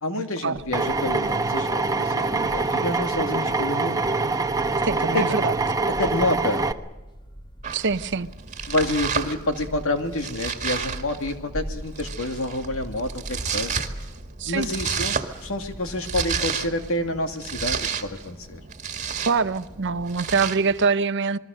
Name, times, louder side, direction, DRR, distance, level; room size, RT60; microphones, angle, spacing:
voice 1, 0.0-4.0 5.1-5.3 6.0-6.7 8.7-13.8 14.5-18.6, left 1 dB, 65° left, 2.5 m, -28 dB
Drill, 0.7-6.7, right 3 dB, 15° right, 1.0 m, -24 dB
sound 1, 4.2-20.5, equal, 20° left, 1.9 m, -42 dB
voice 2, 4.8-5.5 7.7-8.3 14.4-14.7 19.3-21.4, right 4 dB, 55° right, 0.8 m, -24 dB
Domestic sounds home sounds, 7.6-20.9, right 6 dB, 35° right, 2.0 m, -32 dB
28.0 x 21.0 x 6.5 m
head